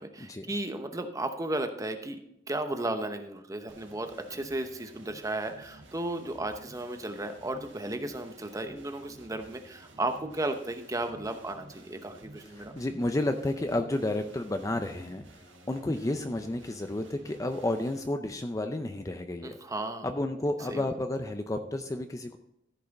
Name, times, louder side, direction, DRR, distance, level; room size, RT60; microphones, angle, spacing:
voice 1, 0.0-2.2 2.5-12.7 19.4-20.1 20.7-20.9, right 2 dB, 20° right, 7 dB, 0.8 m, -34 dB
sound 1, 3.7-18.0, right 2 dB, 90° right, 1.9 m, -52 dB
voice 2, 12.5-15.3 15.7-19.6 20.0-22.4, left 1 dB, 15° left, 7 dB, 0.5 m, -31 dB
14.5 x 5.6 x 4.0 m, 0.81 s
head